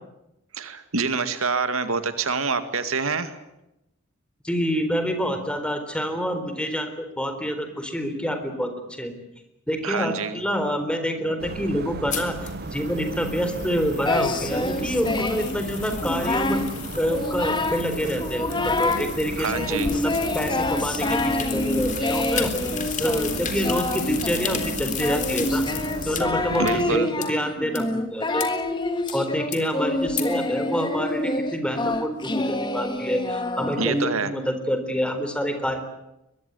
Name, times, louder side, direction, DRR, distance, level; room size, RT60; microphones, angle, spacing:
voice 1, 0.5-3.4 9.8-10.4 19.4-19.9 26.6-27.1 33.8-34.3, right 4 dB, 80° right, 10 dB, 2.2 m, -26 dB
voice 2, 4.4-8.7 9.0-9.1 9.7-16.6 17.0-22.5 23.0-25.6 26.1-28.5 29.1-35.8, equal, 5° left, 7 dB, 4.0 m, -27 dB
sound 1, 11.4-27.0, right 2 dB, 50° right, 0.9 m, -35 dB
sound 2, 12.1-26.2 26.7-26.8 27.2-27.3 27.8-27.9 28.4-28.5 29.1-29.2 29.5-29.6 30.2-30.3, left 9 dB, 35° left, 3.6 m, -35 dB
Singing, 14.1-15.6 15.9-16.7 17.1-17.9 18.2-19.1 19.5-34.0, left 2 dB, 20° left, 2.2 m, -27 dB
23.5 x 21.5 x 9.5 m, 0.89 s
head